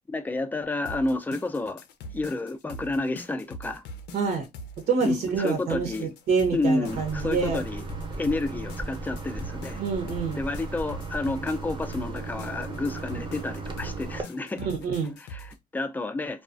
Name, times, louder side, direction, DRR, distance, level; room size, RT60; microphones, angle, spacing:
voice 1, 0.1-1.8 2.1-3.8 5.0-6.1 6.5-7.8 8.2-9.8 10.3-14.7 15.2-16.4, left 2 dB, 10° left, 0.4 m, -30 dB
sound 1, 0.9-15.6, equal, 85° left, 0.5 m, -43 dB
voice 2, 4.1-4.5 4.9-7.6 9.8-10.4 14.6-15.2, right 5 dB, 65° right, 0.8 m, -27 dB
sound 2, 6.8-14.2, right 3 dB, 30° right, 0.7 m, -36 dB
2.3 x 2.2 x 2.4 m
cardioid pair, 110°, 17 cm